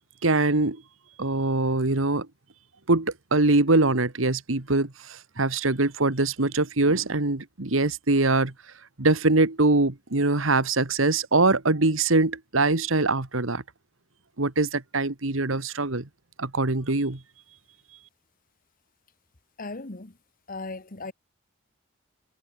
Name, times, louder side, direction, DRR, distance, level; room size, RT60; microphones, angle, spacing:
voice 1, 0.2-0.8 1.2-2.3 2.9-8.5 9.0-13.6 14.4-16.1 16.4-17.2, right 2 dB, 80° right, 1.8 m, -23 dB
voice 2, 19.6-20.1 20.5-21.1, left 3 dB, 45° left, 1.5 m, -37 dB
head